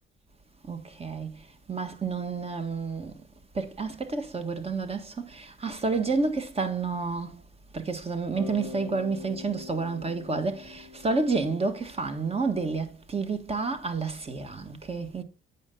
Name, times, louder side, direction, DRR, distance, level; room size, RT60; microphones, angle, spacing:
voice 1, 0.6-3.3 3.5-7.4 7.7-15.2, right 4 dB, 30° right, 1.5 m, -30 dB
Bass guitar, 8.3-12.3, left 4 dB, 65° right, 5.6 m, -43 dB
8.5 x 5.6 x 3.7 m
cardioid pair, 90°, 20 cm